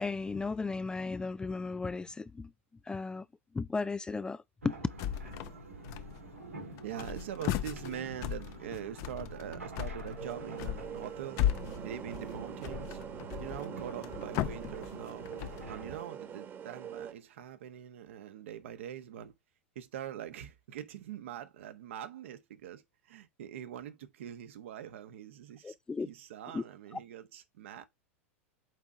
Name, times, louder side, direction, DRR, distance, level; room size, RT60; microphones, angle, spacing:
voice 1, 0.0-2.5 2.9-3.3 3.5-4.7 25.6-26.1 26.5-26.6, left 4 dB, 10° left, 0.3 m, -35 dB
sound 1, 4.6-16.0, right 2 dB, 85° right, 2.0 m, -47 dB
sound 2, 5.0-5.6 5.8-6.5 6.8-15.8, left 12 dB, 45° left, 0.7 m, -36 dB
voice 2, 6.8-11.4 11.8-13.0 13.3-15.3 15.7-19.3 19.7-25.7 26.1-27.8, right 10 dB, 65° right, 1.2 m, -43 dB
sound 3, 10.2-17.1, right 8 dB, 30° right, 1.4 m, -44 dB
8.1 x 3.6 x 4.5 m
figure-of-eight pair, 90°, 7 cm